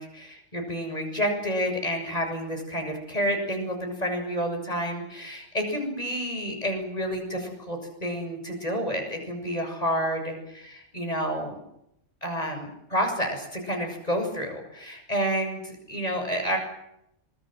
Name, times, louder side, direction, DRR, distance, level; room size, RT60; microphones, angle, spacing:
voice 1, 0.0-11.6 12.2-16.6, equal, 30° left, 4 dB, 7.5 m, -29 dB
26.5 x 22.0 x 8.0 m, 0.79 s
omnidirectional pair, 1.3 m